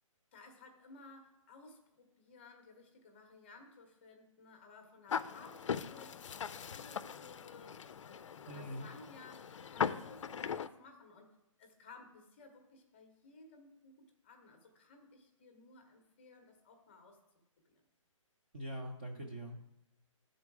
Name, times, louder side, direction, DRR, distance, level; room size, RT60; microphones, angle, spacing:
voice 1, 0.3-17.2 17.6-17.8, left 3 dB, 20° left, 4 dB, 0.7 m, -58 dB
sound 1, 5.1-10.7, left 7 dB, 65° left, 0.4 m, -40 dB
voice 2, 8.5-8.9 18.5-19.6, equal, 20° right, 0 dB, 0.4 m, -43 dB
10.5 x 3.9 x 4.7 m, 0.85 s
hypercardioid pair, 175°, 17 cm